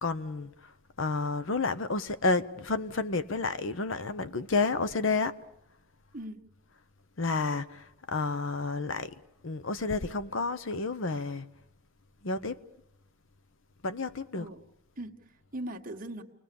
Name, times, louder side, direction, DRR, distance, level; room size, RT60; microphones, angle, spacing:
voice 1, 0.0-5.4 7.2-9.1 9.4-11.5 12.2-12.6 13.8-14.5, left 3 dB, 60° left, 0.8 m, -30 dB
voice 2, 15.0-16.2, right 1 dB, 40° right, 1.7 m, -40 dB
29.0 x 20.0 x 7.0 m
head